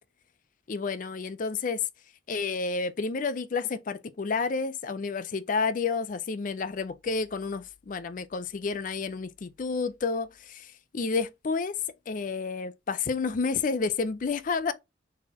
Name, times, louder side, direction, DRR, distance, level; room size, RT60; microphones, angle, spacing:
voice 1, 0.7-1.8 2.3-11.7 12.1-14.7, left 4 dB, 45° left, 0.4 m, -30 dB
4.3 x 4.2 x 2.8 m
head